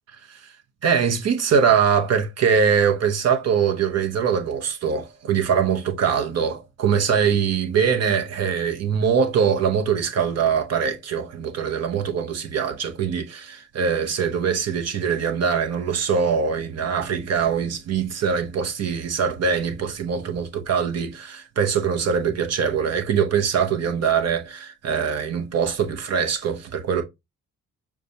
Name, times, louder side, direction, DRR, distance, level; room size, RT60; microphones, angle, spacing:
voice 1, 0.8-27.0, right 7 dB, 55° right, 0.8 m, -22 dB
6.5 x 2.3 x 2.7 m
cardioid pair, 90°, 30 cm